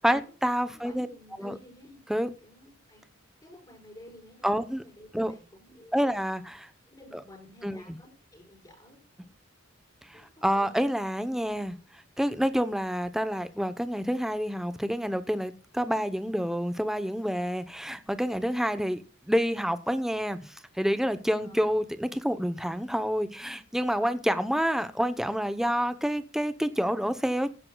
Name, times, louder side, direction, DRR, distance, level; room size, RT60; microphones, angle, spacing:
voice 1, 0.0-1.1 1.4-1.5 2.1-2.3 4.4-4.8 5.1-5.3 5.9-6.7 7.6-8.0 10.1-11.7 12.2-19.0 19.3-27.5, equal, ahead, 0.8 m, -28 dB
voice 2, 0.7-2.0 2.4-3.0 3.4-6.1 6.9-9.2 10.1-10.9 21.4-21.7, left 1 dB, 20° left, 5.3 m, -52 dB
16.5 x 9.7 x 2.3 m
head